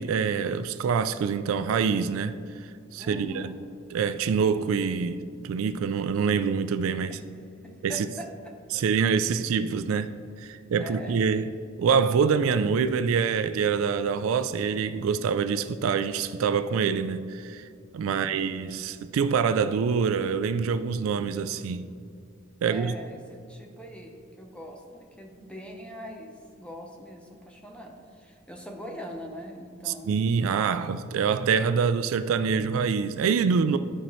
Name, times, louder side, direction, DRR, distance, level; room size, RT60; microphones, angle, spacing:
voice 1, 0.0-3.6 3.9-7.2 7.8-8.1 8.7-10.1 10.4-17.7 17.9-21.9 22.6-23.0 29.9-33.8, right 6 dB, 75° right, 0.3 m, -25 dB
voice 2, 3.0-3.5 7.1-7.2 7.6-8.3 8.7-8.8 10.8-11.2 22.6-30.2, equal, 5° left, 0.8 m, -42 dB
12.5 x 4.3 x 3.1 m
head